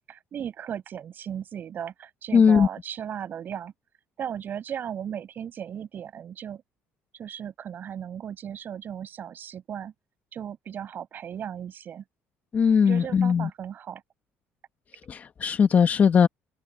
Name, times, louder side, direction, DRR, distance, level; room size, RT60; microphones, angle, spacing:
voice 1, 0.1-3.7 4.2-6.6 7.1-9.9 10.3-12.0 12.8-14.0, right 9 dB, 45° right, 6.4 m, -36 dB
voice 2, 2.3-2.7 12.5-13.5 15.1-16.3, left 6 dB, 35° left, 1.4 m, -19 dB
open air
cardioid pair, 140°, 5 cm